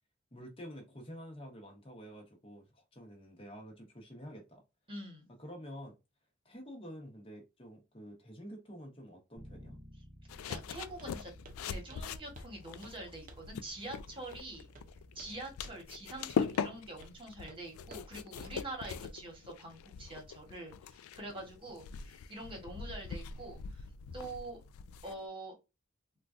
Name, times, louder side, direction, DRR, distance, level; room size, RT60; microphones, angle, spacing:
voice 1, 0.3-4.6 5.4-5.9 6.4-9.8, equal, 25° left, 1.0 m, -49 dB
voice 2, 4.9-5.3 10.5-11.3 11.6-14.7 15.1-23.8 24.1-24.6 25.0-25.5, right 2 dB, 25° right, 1.3 m, -45 dB
Bass guitar, 9.4-15.6, equal, ahead, 0.9 m, -55 dB
sound 1, 10.3-25.3, left 6 dB, 90° left, 0.3 m, -41 dB
Walk footsteps, 10.5-10.7 11.0-11.2 11.4-11.6 11.9-12.6 12.8-13.0 13.3-13.5 14.3-14.5 14.7-15.4 15.6-15.8 16.1-16.2 16.5-16.7 17.0-17.2 17.5-17.6 17.9-18.1 18.4-18.5 18.8-19.1, right 2 dB, 40° right, 0.5 m, -54 dB
3.7 x 2.3 x 2.5 m
head